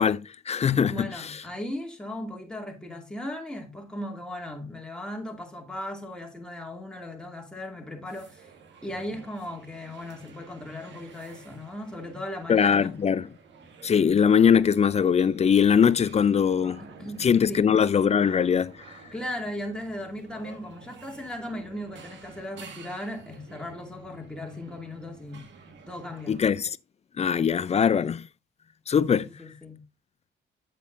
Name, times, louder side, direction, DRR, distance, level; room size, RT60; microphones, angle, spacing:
voice 1, 0.0-1.4 12.5-13.2 13.8-16.8 17.2-18.7 26.3-26.7 27.2-28.2 28.9-29.3, left 7 dB, 35° left, 0.4 m, -21 dB
voice 2, 0.8-8.5 8.8-13.0 16.8-17.7 19.1-25.5 25.9-26.4 29.2-29.8, left 1 dB, 5° left, 2.3 m, -37 dB
sound 1, 8.1-26.6, right 5 dB, 65° right, 1.6 m, -51 dB
8.3 x 7.6 x 2.6 m
cardioid pair, 90°, 20 cm